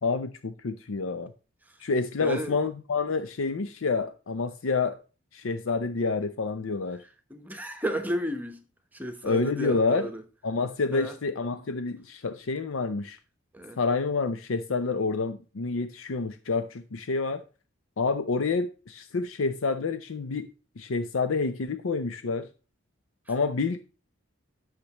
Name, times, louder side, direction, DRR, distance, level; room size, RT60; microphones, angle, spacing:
voice 1, 0.0-1.3 1.8-5.0 5.3-7.0 9.2-10.1 10.4-13.2 13.8-17.4 18.0-22.5 23.3-23.8, left 4 dB, 75° left, 0.6 m, -28 dB
voice 2, 2.2-2.6 7.3-8.6 8.9-10.2 10.9-11.1 13.5-13.8, right 1 dB, 10° right, 0.9 m, -33 dB
11.5 x 6.6 x 3.0 m
head